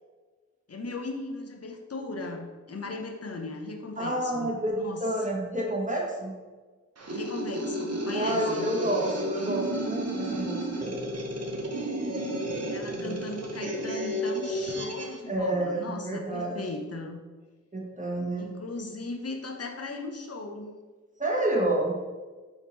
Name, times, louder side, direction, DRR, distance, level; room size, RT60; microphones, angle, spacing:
voice 1, 0.7-5.0 7.1-8.7 12.7-17.2 18.3-20.7, left 2 dB, 55° left, 2 dB, 0.6 m, -37 dB
voice 2, 4.0-6.3 8.1-10.9 12.9-13.2 15.3-16.6 17.7-18.5 21.2-21.9, right 1 dB, 25° right, -2 dB, 1.0 m, -29 dB
sound 1, 7.0-15.2, right 1 dB, 60° right, 0.7 m, -32 dB
3.5 x 2.9 x 4.0 m, 1.4 s
wide cardioid pair, 45°, 30 cm